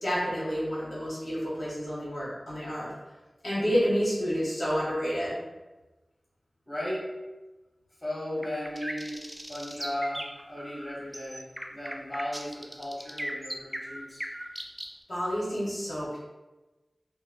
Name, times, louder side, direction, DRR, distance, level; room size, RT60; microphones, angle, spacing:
voice 1, 0.0-2.9 3.4-5.4 15.1-16.2, equal, 75° left, -9 dB, 1.2 m, -29 dB
voice 2, 6.7-7.0 8.0-9.2 9.5-14.2, left 1 dB, 20° left, -7 dB, 1.1 m, -36 dB
sound 1, 8.4-14.9, right 1 dB, 15° right, 0.3 m, -38 dB
3.0 x 2.2 x 2.2 m, 1.1 s
wide cardioid pair, 45°, 0 cm